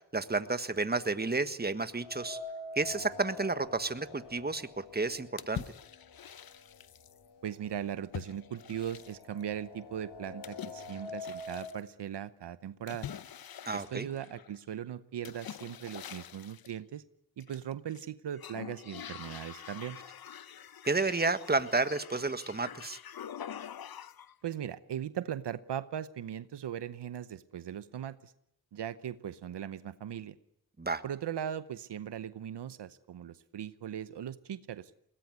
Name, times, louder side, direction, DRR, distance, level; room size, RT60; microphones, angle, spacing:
voice 1, 0.1-2.4 2.7-5.6 13.6-14.1 20.8-23.0 30.8-31.0, right 3 dB, 25° right, 11 dB, 1.5 m, -31 dB
sound 1, 2.0-6.0 6.4-6.5 7.5-7.6 7.9-11.8, left 3 dB, 80° left, 2.3 m, -45 dB
sound 2, 5.4-7.2 8.1-9.4 10.4-11.8 12.9-14.6 15.2-16.8 17.4-18.0 18.3-24.3, left 9 dB, 60° left, 0.8 m, -45 dB
voice 2, 7.4-13.1 13.7-17.0 17.4-20.0 24.4-28.3 28.7-30.3 31.0-34.9, right 9 dB, 80° right, 14 dB, 0.9 m, -39 dB
21.5 x 18.5 x 9.6 m, 0.77 s
cardioid pair, 55°, 40 cm